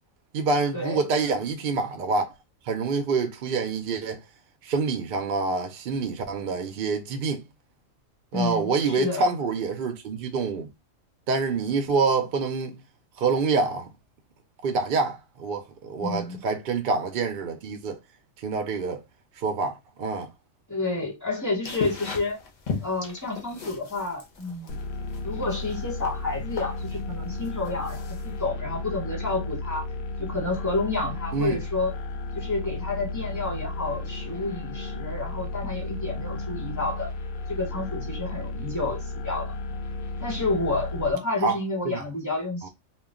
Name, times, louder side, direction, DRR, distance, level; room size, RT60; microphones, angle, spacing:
voice 1, 0.3-2.3 2.6-4.2 4.6-7.4 8.3-10.7 11.3-12.8 13.2-13.9 14.6-18.0 18.4-19.0 19.4-20.3 31.3-31.6 41.4-41.6 42.6-42.7, right 4 dB, 65° right, 0.5 m, -26 dB
voice 2, 8.3-9.3 16.0-16.4 20.7-22.4 22.8-24.8 25.2-29.9 30.2-31.9 32.3-37.1 37.5-39.5 40.2-42.7, left 3 dB, 15° left, 0.9 m, -30 dB
sound 1, 21.6-28.4, left 4 dB, 50° left, 0.5 m, -38 dB
sound 2, 24.7-41.1, left 2 dB, 90° left, 1.0 m, -34 dB
2.2 x 2.2 x 3.6 m
omnidirectional pair, 1.4 m